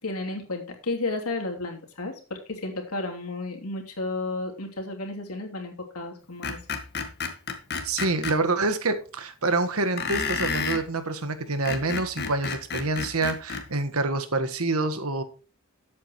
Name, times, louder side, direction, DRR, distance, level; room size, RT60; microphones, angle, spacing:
voice 1, 0.0-6.6, left 2 dB, 90° left, 3.0 m, -32 dB
Screech, 6.4-8.4 10.0-10.8 11.5-13.7, left 5 dB, 50° left, 1.7 m, -30 dB
voice 2, 7.8-15.2, right 3 dB, 85° right, 1.5 m, -27 dB
12.5 x 8.4 x 3.1 m
head